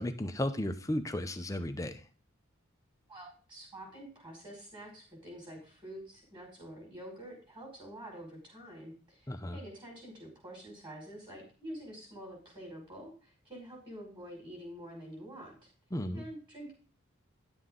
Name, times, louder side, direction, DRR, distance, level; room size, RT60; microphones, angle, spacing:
voice 1, 0.0-2.0 9.3-9.6 15.9-16.2, left 1 dB, 15° left, 7 dB, 0.7 m, -34 dB
voice 2, 3.1-15.7 16.1-16.7, right 1 dB, 25° right, -1 dB, 5.4 m, -47 dB
11.0 x 7.7 x 3.8 m, 0.38 s
head